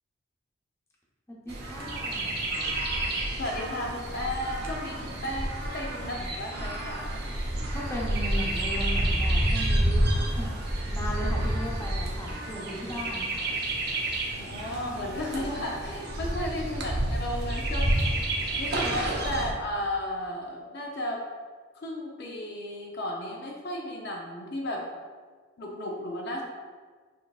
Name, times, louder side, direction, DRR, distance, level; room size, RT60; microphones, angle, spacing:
voice 1, 1.3-2.3 5.0-5.1 7.7-10.5 10.9-13.4 16.3-16.5 18.4-19.1, equal, 15° left, -4 dB, 0.8 m, -38 dB
Chirp tweet, 1.5-19.5, right 1 dB, 55° right, 0.8 m, -29 dB
voice 2, 3.4-7.3 14.3-18.2 18.6-21.2 21.8-24.9 25.6-26.4, left 1 dB, 55° left, -1 dB, 0.6 m, -34 dB
6.6 x 3.4 x 2.4 m, 1.5 s
head